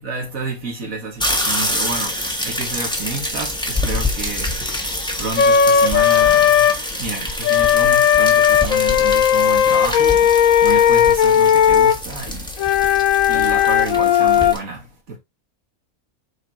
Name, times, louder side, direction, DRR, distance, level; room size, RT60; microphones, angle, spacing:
voice 1, 0.0-15.2, right 3 dB, 85° right, 2.5 m, -30 dB
sound 1, 1.2-14.6, left 1 dB, 5° left, 1.5 m, -26 dB
Wind instrument woodwind instrument, 5.4-6.8 7.4-12.0 12.6-14.5, left 9 dB, 80° left, 1.2 m, -15 dB
7.7 x 5.1 x 3.0 m
omnidirectional pair, 1.4 m